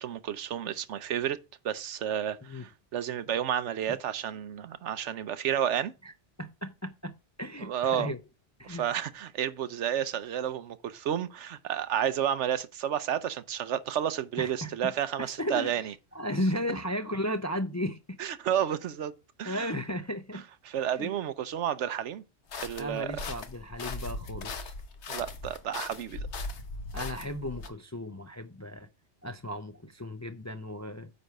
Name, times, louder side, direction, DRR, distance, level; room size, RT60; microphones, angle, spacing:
voice 1, 0.0-1.4 1.6-5.9 7.6-8.1 8.6-15.8 18.2-19.1 19.4-19.7 20.6-22.2 22.5-23.1 25.1-26.3, right 10 dB, 80° right, 1.0 m, -31 dB
voice 2, 6.4-8.2 8.6-8.9 14.4-18.2 19.4-20.5 20.9-21.1 22.8-24.7 26.9-28.9 29.2-31.1, left 1 dB, 20° left, 0.4 m, -35 dB
sound 1, 22.5-27.7, left 3 dB, 75° left, 1.3 m, -39 dB
9.3 x 3.4 x 6.5 m
omnidirectional pair, 1.2 m